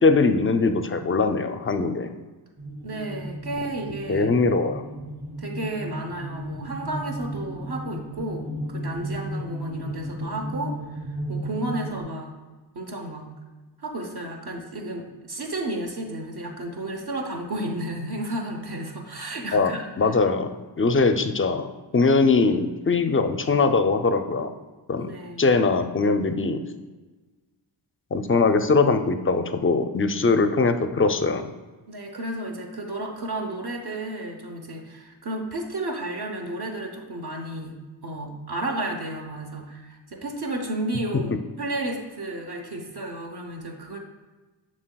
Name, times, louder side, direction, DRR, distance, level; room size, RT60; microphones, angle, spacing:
voice 1, 0.0-2.1 4.1-4.8 19.5-19.7 20.0-20.5 20.8-21.7 21.9-24.5 24.9-25.1 25.4-26.6 28.1-31.5, left 4 dB, 30° left, 8 dB, 0.4 m, -21 dB
sound 1, 2.6-12.0, equal, 35° right, 1.9 m, -34 dB
voice 2, 2.8-4.3 5.4-12.3 12.7-13.3 13.8-20.2 20.9-21.0 25.0-25.5 31.9-44.0, right 1 dB, 55° right, 1 dB, 0.8 m, -32 dB
7.5 x 6.2 x 2.2 m, 1.3 s
wide cardioid pair, 80°, 47 cm